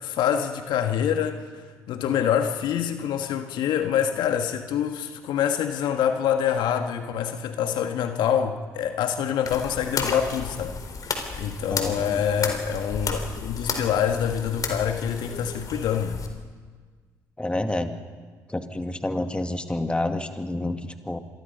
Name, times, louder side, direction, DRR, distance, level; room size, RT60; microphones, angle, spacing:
voice 1, 0.0-10.8 11.0-16.2, left 8 dB, 70° left, 6 dB, 1.6 m, -26 dB
sound 1, 9.5-16.3, left 4 dB, 50° left, 4.2 m, -33 dB
voice 2, 11.7-12.2 17.4-18.0 18.5-21.2, left 1 dB, 15° left, 6 dB, 2.4 m, -29 dB
26.5 x 22.5 x 5.5 m, 1.5 s
hypercardioid pair, 50°, 8 cm